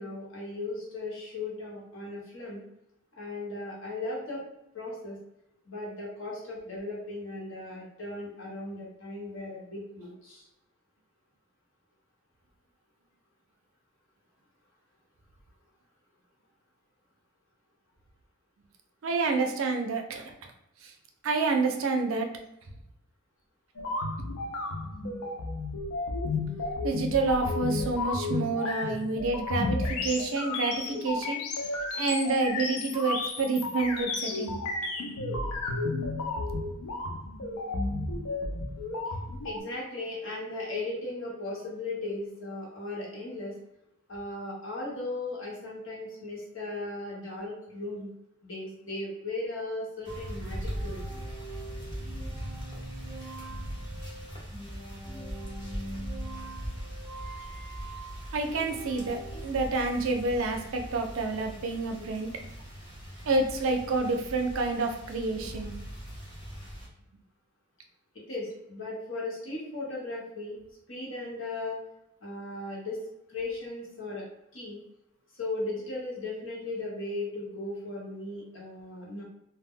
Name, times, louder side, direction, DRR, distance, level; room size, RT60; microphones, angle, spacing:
voice 1, 0.0-2.6 3.1-4.4 4.7-5.2 5.7-10.5 39.1-39.2 39.4-43.6 44.1-48.1 48.4-51.0 59.3-59.4 62.0-62.1 65.3-65.5 68.1-70.6 70.9-71.8 72.2-73.0 73.3-74.3 74.5-74.8 75.3-79.2, left 2 dB, 60° left, -4 dB, 1.0 m, -37 dB
voice 2, 19.0-20.3 20.8-20.9 21.2-22.3 26.8-31.4 31.9-34.6 58.3-62.3 63.3-65.7, right 3 dB, 70° right, 4 dB, 0.4 m, -28 dB
sound 1, 23.8-39.6, left 3 dB, 90° left, 0.4 m, -32 dB
sound 2, 50.0-66.9, equal, 20° left, 0.8 m, -40 dB
sound 3, 50.1-59.5, right 2 dB, 10° right, 0.5 m, -45 dB
2.1 x 2.1 x 3.5 m, 0.84 s
head